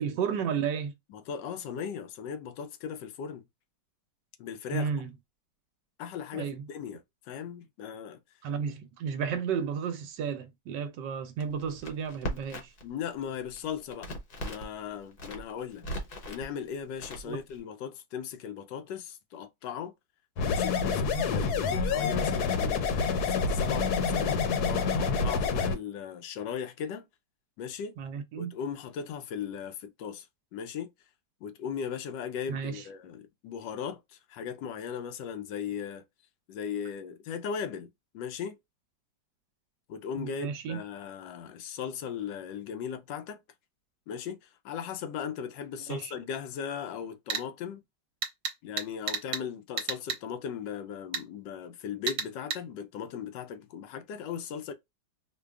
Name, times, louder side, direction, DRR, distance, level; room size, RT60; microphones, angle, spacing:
voice 1, 0.0-0.9 4.7-5.1 6.3-6.6 8.4-12.7 17.2-17.4 21.1-21.2 28.0-28.5 32.5-32.8 40.2-40.8 45.9-46.1, right 7 dB, 80° right, 1.2 m, -33 dB
voice 2, 1.1-3.4 4.4-4.9 6.0-7.0 7.3-8.2 12.8-14.1 14.4-15.9 16.3-19.9 20.4-22.9 23.3-27.1 27.6-28.0 28.4-30.3 30.5-30.9 31.4-36.0 36.5-38.6 39.9-43.4 44.1-47.8 48.6-54.7, left 7 dB, 90° left, 1.3 m, -38 dB
Crackle, 11.4-12.9 13.2-14.7 15.1-16.5 17.0-17.6, equal, 45° left, 0.7 m, -38 dB
sound 1, 20.4-25.8, left 5 dB, 70° left, 1.1 m, -27 dB
sound 2, 47.3-47.5 48.2-49.4 49.8-50.2 51.1-51.3 52.1-52.6, right 6 dB, 60° right, 1.1 m, -32 dB
5.0 x 2.2 x 2.3 m
omnidirectional pair, 1.9 m